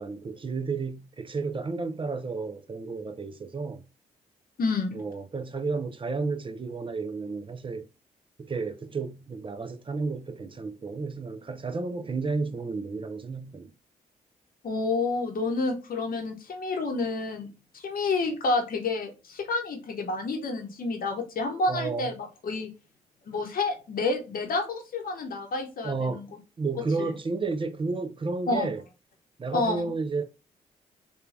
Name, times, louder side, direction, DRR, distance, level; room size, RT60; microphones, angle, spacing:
voice 1, 0.0-3.8 4.9-7.9 8.4-13.7 21.7-22.1 25.8-26.2 26.6-28.8 29.4-30.2, right 4 dB, 30° right, 0.5 m, -32 dB
voice 2, 4.6-5.0 14.6-22.7 23.3-26.3 27.0-27.1 28.5-28.7 29.5-29.9, left 3 dB, 50° left, 0.8 m, -29 dB
3.0 x 2.3 x 2.4 m
hypercardioid pair, 40°, 18 cm